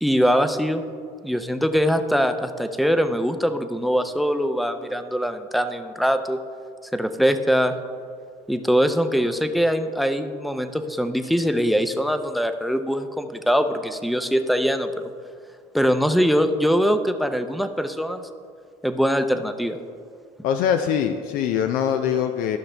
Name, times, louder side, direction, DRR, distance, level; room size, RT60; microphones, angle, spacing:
voice 1, 0.0-0.8 1.2-6.4 6.9-7.8 8.5-15.1 15.7-18.2 18.8-19.8, equal, ahead, 8 dB, 0.5 m, -22 dB
voice 2, 20.4-22.6, left 8 dB, 75° left, 7 dB, 0.5 m, -23 dB
13.5 x 5.7 x 3.3 m, 2.2 s
supercardioid pair, 95°, 15 cm